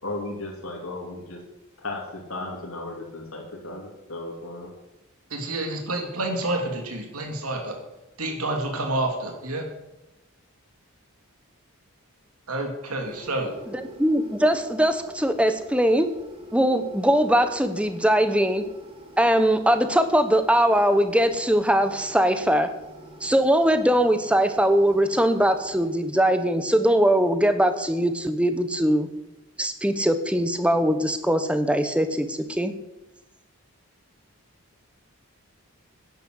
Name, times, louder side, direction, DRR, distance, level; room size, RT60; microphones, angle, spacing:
voice 1, 0.0-1.4 1.8-4.7, left 2 dB, 75° left, -1 dB, 2.9 m, -35 dB
voice 2, 5.3-7.7 8.2-9.7 12.5-13.5, right 2 dB, 85° right, 3 dB, 3.0 m, -28 dB
sound 1, 13.0-25.9, equal, 25° right, 2.6 m, -45 dB
voice 3, 13.7-16.1 16.5-18.7 19.2-22.7 23.2-29.1 29.6-32.7, equal, 5° right, 9 dB, 1.0 m, -21 dB
11.5 x 10.5 x 7.8 m, 0.97 s
head